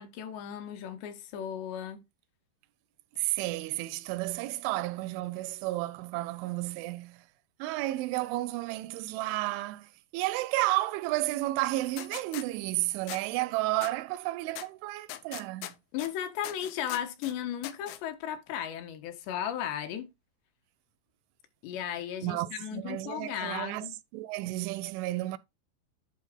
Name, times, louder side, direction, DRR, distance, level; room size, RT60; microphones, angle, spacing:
voice 1, 0.0-2.0 15.9-20.1 21.6-24.0, left 10 dB, 70° left, 3.1 m, -35 dB
voice 2, 3.2-7.2 7.6-9.9 10.1-15.7 22.2-23.9 24.1-25.4, right 18 dB, 90° right, 3.1 m, -32 dB
sound 1, 12.0-12.5 13.1-13.2 13.8-13.9 14.6-14.7 15.1-16.1 16.4-17.3 17.6-18.0, left 14 dB, 90° left, 3.3 m, -40 dB
11.0 x 4.6 x 3.7 m
omnidirectional pair, 5.5 m